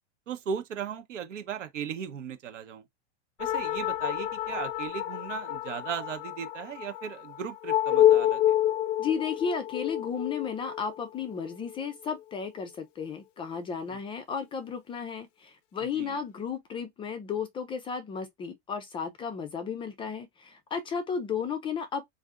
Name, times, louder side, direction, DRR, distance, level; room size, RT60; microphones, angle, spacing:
voice 1, 0.3-2.8 3.4-8.6 16.0-16.2, right 7 dB, 85° right, 0.9 m, -37 dB
sound 1, 3.4-12.2, left 12 dB, 85° left, 0.5 m, -28 dB
voice 2, 9.0-22.1, left 6 dB, 15° left, 0.3 m, -34 dB
3.4 x 2.5 x 2.4 m
hypercardioid pair, 115°, 36 cm